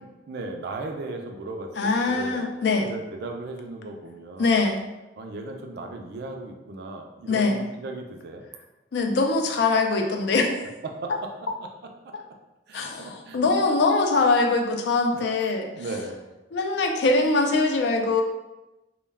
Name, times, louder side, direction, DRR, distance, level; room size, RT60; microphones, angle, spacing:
voice 1, 0.0-2.5 2.8-4.7 5.2-8.4 10.8-11.3 12.0-12.1 12.7-13.4 15.1-15.2 15.7-16.2, right 2 dB, 65° right, 3 dB, 0.3 m, -36 dB
voice 2, 1.8-2.9 4.4-4.8 7.3-7.6 8.9-10.6 12.7-15.7 16.5-18.2, left 3 dB, 65° left, 3 dB, 0.4 m, -22 dB
2.2 x 2.1 x 3.3 m, 1.0 s
head